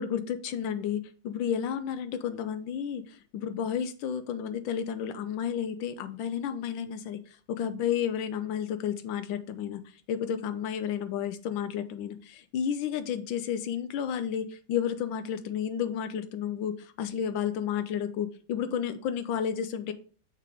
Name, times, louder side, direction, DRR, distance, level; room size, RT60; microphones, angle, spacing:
voice 1, 0.0-7.2 7.5-9.8 10.1-19.9, left 8 dB, 75° left, 10 dB, 1.2 m, -32 dB
5.8 x 3.6 x 4.7 m, 0.40 s
omnidirectional pair, 2.4 m